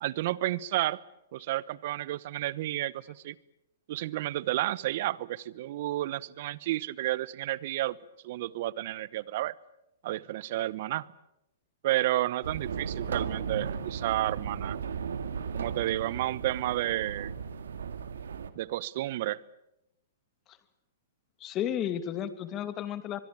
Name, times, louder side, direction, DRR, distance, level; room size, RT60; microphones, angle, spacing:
voice 1, 0.0-1.0 1.3-3.3 3.9-8.0 8.2-9.5 10.0-11.1 11.8-14.8 15.5-17.3 18.5-19.4, right 15 dB, 55° right, 21 dB, 1.0 m, -31 dB
sound 1, 12.4-18.5, right 6 dB, 80° right, 2.2 m, -36 dB
voice 2, 21.4-23.2, left 10 dB, 30° left, 11 dB, 2.4 m, -33 dB
24.0 x 22.5 x 8.7 m, 0.88 s
hypercardioid pair, 130°, 0 cm